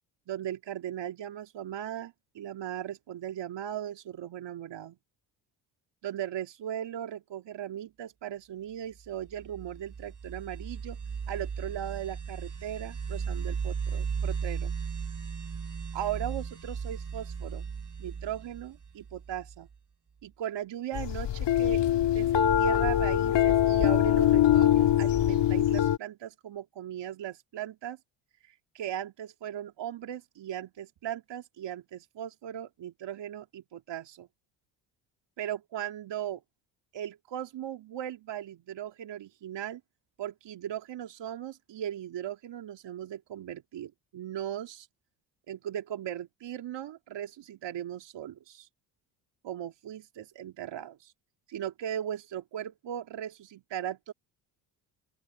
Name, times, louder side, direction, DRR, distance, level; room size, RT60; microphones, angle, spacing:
voice 1, 0.3-5.0 6.0-11.0 11.3-14.7 15.9-17.6 18.0-19.7 20.2-21.8 22.1-28.0 28.4-34.3 35.4-36.4 36.9-39.8 40.2-44.9 45.5-48.7 49.4-51.1 51.5-54.1, right 10 dB, 60° right, 2.4 m, -38 dB
sound 1, 9.2-19.7, right 6 dB, 40° right, 3.2 m, -36 dB
sound 2, 20.9-26.0, left 11 dB, 55° left, 2.0 m, -23 dB
open air
hypercardioid pair, 60°, 49 cm